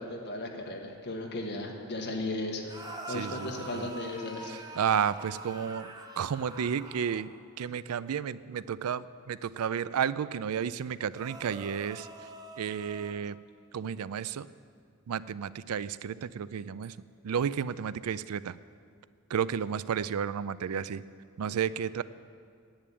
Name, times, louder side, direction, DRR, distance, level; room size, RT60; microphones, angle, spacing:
voice 1, 0.0-2.7 3.1-4.8, left 1 dB, 55° left, 1 dB, 1.6 m, -36 dB
sound 1, 2.7-7.4 11.1-13.1, right 2 dB, 20° right, 1.0 m, -45 dB
voice 2, 3.1-3.9 4.8-5.9 6.2-7.3 7.6-12.1 12.6-13.4 13.7-14.5 15.1-16.9 17.2-18.6 19.3-21.0 21.4-22.0, right 8 dB, 85° right, 17 dB, 0.4 m, -32 dB
10.5 x 8.7 x 8.5 m, 2.1 s
head